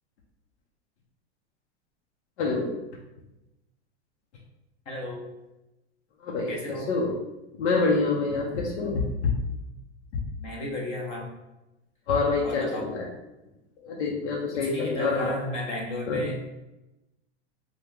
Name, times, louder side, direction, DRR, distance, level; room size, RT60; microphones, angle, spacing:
voice 1, 2.4-2.7 6.2-6.5 6.9-7.1 7.6-9.3 12.1-13.0 13.8-15.3 16.1-16.2, left 4 dB, 85° left, -1 dB, 0.7 m, -26 dB
voice 2, 4.9-5.2 6.5-6.9 10.4-11.3 12.4-12.9 14.5-16.4, left 1 dB, 20° left, -2 dB, 0.4 m, -34 dB
2.9 x 2.2 x 3.5 m, 0.97 s
supercardioid pair, 160°, 34 cm